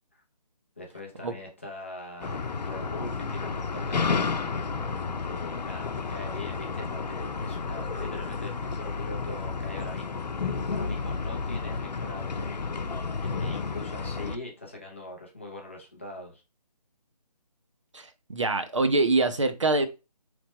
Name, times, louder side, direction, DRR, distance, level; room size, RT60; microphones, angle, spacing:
voice 1, 0.8-4.5 5.2-12.5 12.8-16.4, left 2 dB, 20° left, 0.6 m, -42 dB
sound 1, 2.2-14.4, left 4 dB, 85° left, 0.7 m, -31 dB
voice 2, 17.9-19.9, right 2 dB, 50° right, 0.6 m, -24 dB
4.2 x 3.3 x 3.1 m
hypercardioid pair, 175°, 21 cm